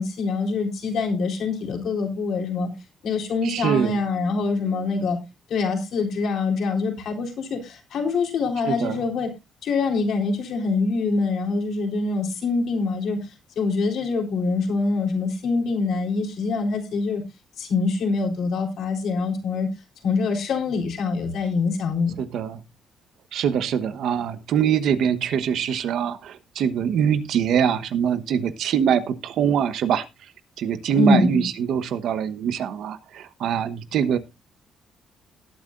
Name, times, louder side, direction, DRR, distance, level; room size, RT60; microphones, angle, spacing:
voice 1, 0.0-2.7 3.0-5.2 5.5-9.3 9.6-13.3 13.6-17.2 17.6-19.7 20.0-22.2 31.0-31.4, left 4 dB, 70° left, 3 dB, 3.8 m, -24 dB
voice 2, 3.4-4.0 8.6-9.0 22.2-22.6 23.3-30.0 30.6-34.2, right 8 dB, 75° right, 12 dB, 1.2 m, -23 dB
18.5 x 8.5 x 2.5 m, 0.24 s
cardioid pair, 110°, 0 cm